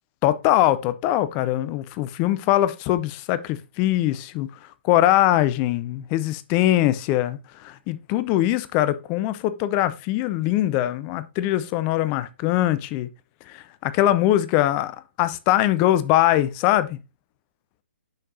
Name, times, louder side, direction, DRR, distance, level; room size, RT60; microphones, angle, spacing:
voice 1, 0.2-13.1 13.5-17.0, left 14 dB, 25° left, 0.5 m, -22 dB
6.4 x 6.4 x 2.7 m
figure-of-eight pair, 130°, 6 cm